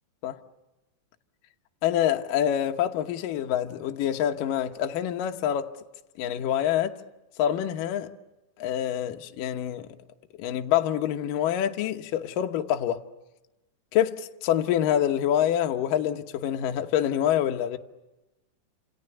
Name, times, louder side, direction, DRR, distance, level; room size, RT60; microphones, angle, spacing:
voice 1, 1.8-5.7 6.2-7.0 7.4-8.1 8.6-9.9 10.4-13.0 13.9-17.8, left 10 dB, 70° left, 2.2 m, -26 dB
30.0 x 27.5 x 6.9 m
omnidirectional pair, 5.2 m